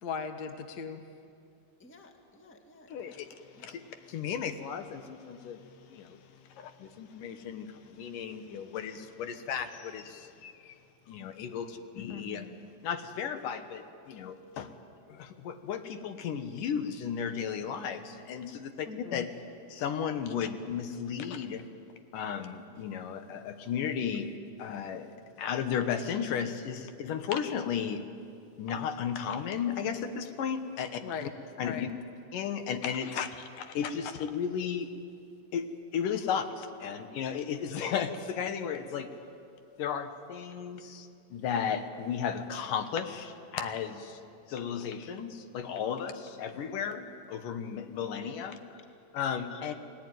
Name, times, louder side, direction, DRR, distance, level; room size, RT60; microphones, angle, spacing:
voice 1, 0.0-1.0 12.1-12.5 18.9-19.2 31.0-31.3 31.6-31.8, left 6 dB, 55° left, 1.0 m, -38 dB
voice 2, 1.8-3.2 3.5-3.7 40.9-41.0 48.7-48.8 49.5-49.7, left 3 dB, 5° left, 1.3 m, -54 dB
voice 3, 2.9-3.3 3.6-5.6 5.9-6.2 6.6-10.7 11.1-12.5 12.8-14.7 15.1-19.3 19.7-21.6 22.1-24.3 24.6-28.0 28.6-31.3 31.6-31.9 32.3-34.9 35.5-35.7 35.9-39.1 39.8-44.2 44.5-48.6 49.1-49.7, left 7 dB, 75° left, 2.8 m, -34 dB
29.5 x 19.5 x 9.3 m
omnidirectional pair, 3.9 m